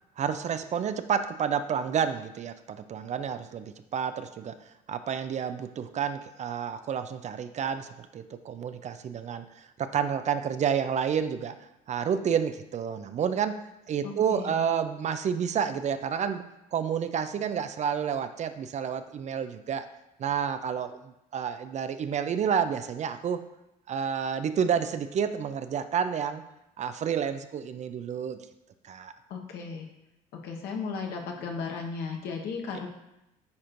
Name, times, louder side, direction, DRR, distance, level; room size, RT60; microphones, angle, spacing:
voice 1, 0.2-4.6 4.9-13.6 13.9-16.4 16.7-19.9 20.2-23.4 23.9-26.4 26.8-28.4 28.8-29.1, right 7 dB, 40° right, 11 dB, 0.5 m, -30 dB
voice 2, 14.0-14.6 29.3-29.9 30.4-32.9, left 5 dB, 65° left, 1 dB, 1.2 m, -35 dB
9.6 x 4.3 x 2.6 m, 0.90 s
supercardioid pair, 70°, 18 cm